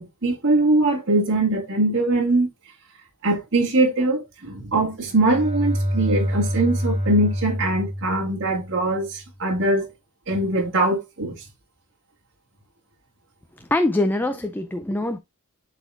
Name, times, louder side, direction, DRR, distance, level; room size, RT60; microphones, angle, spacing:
voice 1, 0.0-2.5 3.2-9.9 10.3-11.3, right 2 dB, 60° right, 1.9 m, -22 dB
Bowed string instrument, 4.9-8.9, equal, 40° right, 3.5 m, -27 dB
voice 2, 13.7-15.2, left 2 dB, 10° left, 0.4 m, -23 dB
12.0 x 4.2 x 2.4 m
head